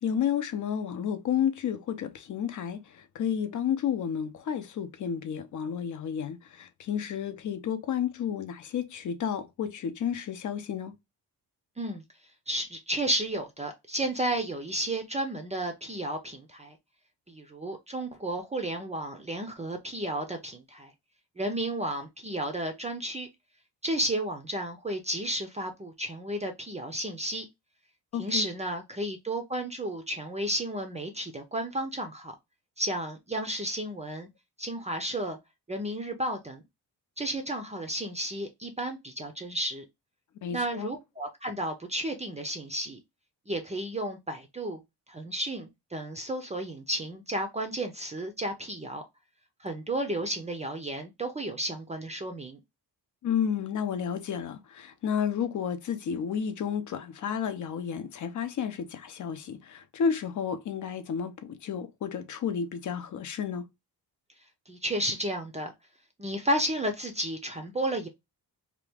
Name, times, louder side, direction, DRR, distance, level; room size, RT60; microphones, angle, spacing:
voice 1, 0.0-10.9 28.1-28.5 40.4-40.9 53.2-63.6, left 8 dB, 50° left, 0.6 m, -31 dB
voice 2, 12.5-16.8 17.3-20.9 21.4-23.3 23.8-27.4 28.2-32.3 32.8-34.3 34.6-35.4 35.7-36.6 37.2-39.8 40.5-43.0 43.5-44.8 45.1-49.0 49.6-52.6 64.7-65.7 66.2-68.1, right 1 dB, 15° right, 0.5 m, -32 dB
2.9 x 2.4 x 3.4 m
cardioid pair, 135°, 40 cm